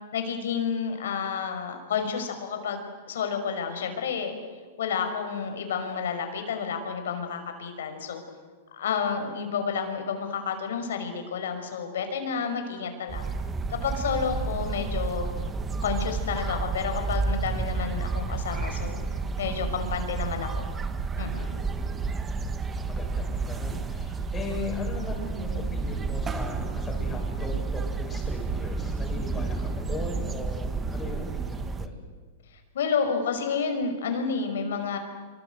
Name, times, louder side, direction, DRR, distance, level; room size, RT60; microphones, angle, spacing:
voice 1, 0.1-4.3 4.8-8.2 8.7-13.3 13.7-15.3 15.8-19.0 19.4-20.6 21.2-21.6 32.7-35.0, left 6 dB, 80° left, 6 dB, 5.6 m, -30 dB
sound 1, 13.1-31.9, right 4 dB, 15° right, 1.4 m, -31 dB
voice 2, 21.9-32.0, left 3 dB, 15° left, 1 dB, 7.6 m, -38 dB
27.0 x 25.0 x 8.1 m, 1.4 s
hypercardioid pair, 140°, 0 cm